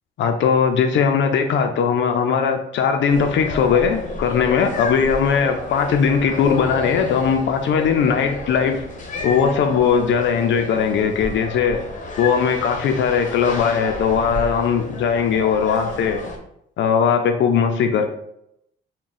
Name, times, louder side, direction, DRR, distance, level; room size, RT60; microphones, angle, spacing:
voice 1, 0.2-8.8 9.2-11.8 12.2-16.2 16.8-18.0, left 6 dB, 70° left, 5 dB, 0.5 m, -19 dB
sound 1, 3.1-16.4, left 3 dB, 40° left, 0.8 m, -31 dB
3.5 x 2.2 x 4.0 m, 0.76 s
cardioid pair, 90°, 20 cm